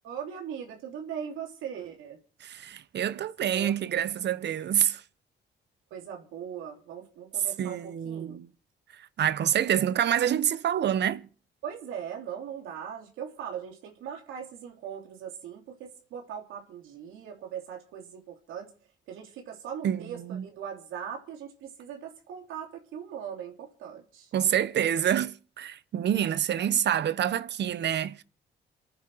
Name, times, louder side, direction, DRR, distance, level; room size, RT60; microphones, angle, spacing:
voice 1, 0.0-2.2 3.4-4.0 5.9-8.4 11.6-18.7 19.1-24.3, right 8 dB, 90° right, 3.1 m, -40 dB
voice 2, 2.4-5.0 7.6-8.5 9.0-11.3 19.8-20.4 24.3-28.2, right 10 dB, 60° right, 0.9 m, -27 dB
27.5 x 9.3 x 4.7 m
cardioid pair, 90°, 20 cm